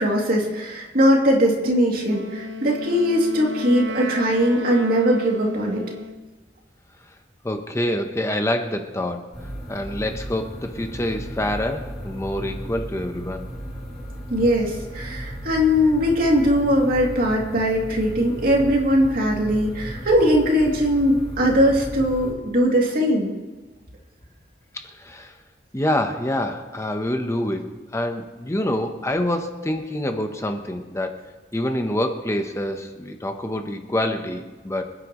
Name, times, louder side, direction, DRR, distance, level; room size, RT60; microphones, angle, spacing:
voice 1, 0.0-5.8 14.3-23.3, equal, 55° right, -1 dB, 2.6 m, -20 dB
Wind instrument woodwind instrument, 2.1-6.3, left 1 dB, 90° right, 0.8 m, -34 dB
voice 2, 7.4-13.5 24.7-25.4 25.7-31.2 31.5-34.8, left 1 dB, 15° left, 5 dB, 0.8 m, -26 dB
sound 1, 9.3-22.3, equal, ahead, 5.5 m, -35 dB
26.0 x 9.9 x 3.1 m, 1.3 s
head